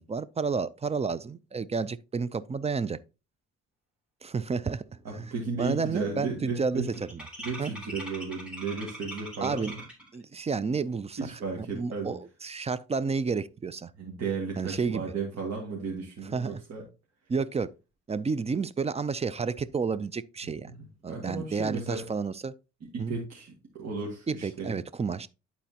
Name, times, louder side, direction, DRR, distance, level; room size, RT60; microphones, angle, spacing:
voice 1, 0.0-3.0 4.2-4.9 5.1-5.3 5.6-7.3 7.6-7.7 9.4-9.7 10.1-11.2 11.6-13.9 14.6-15.0 16.3-16.6 17.3-17.7 18.1-20.7 21.0-22.5 23.0-23.1 24.3-25.3, right 5 dB, 20° right, 0.4 m, -31 dB
sound 1, 4.5-4.6 4.9-5.3 5.5-10.2, equal, 5° right, 3.3 m, -43 dB
voice 2, 5.0-6.9 7.4-9.8 11.2-12.2 14.0-16.8 20.8-22.1 22.8-24.8, right 4 dB, 60° right, 2.0 m, -34 dB
11.5 x 4.2 x 2.8 m
cardioid pair, 90°, 30 cm